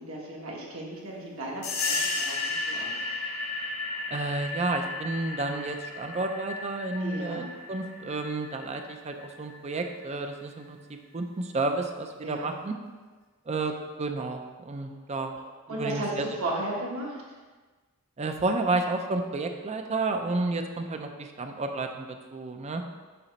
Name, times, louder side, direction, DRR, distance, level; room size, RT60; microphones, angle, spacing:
voice 1, 0.0-3.2 7.0-7.5 12.2-12.5 15.7-17.2, right 1 dB, 70° right, -3 dB, 1.4 m, -35 dB
Distant Perc Revrb Bomb, 1.6-9.9, left 3 dB, 80° left, 1.4 m, -34 dB
voice 2, 4.1-10.8 11.1-12.7 13.5-13.7 14.0-15.4 15.7-16.3 18.2-22.8, right 3 dB, 30° right, 5 dB, 0.5 m, -31 dB
6.9 x 3.0 x 5.3 m, 1.3 s
head